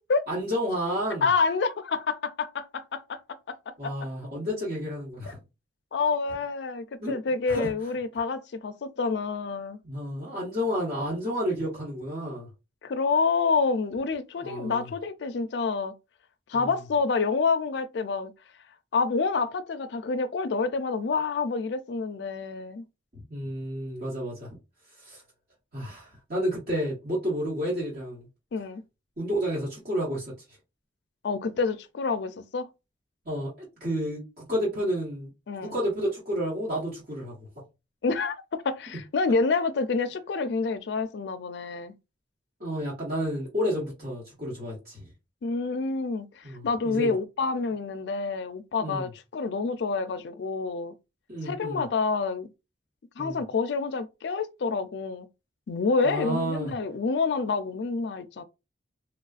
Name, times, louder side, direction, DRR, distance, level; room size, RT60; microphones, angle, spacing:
voice 1, 0.3-1.3 3.8-5.4 7.0-7.2 7.5-7.7 9.8-12.5 14.4-14.9 16.5-16.7 23.1-24.5 25.0-25.2 25.7-28.3 29.2-30.3 33.2-35.3 35.6-37.3 42.6-45.1 46.4-47.1 48.8-49.1 51.3-51.8 53.2-53.4 56.0-56.7, equal, 50° right, 1.2 m, -31 dB
voice 2, 1.2-3.6 3.8-3.9 5.9-9.8 12.8-16.0 16.5-18.3 18.9-22.8 28.5-28.8 31.2-32.7 35.5-35.7 38.0-41.9 45.4-50.9 51.4-52.5 53.2-55.3 55.7-58.4, left 4 dB, 65° left, 0.4 m, -28 dB
3.3 x 2.3 x 2.4 m
head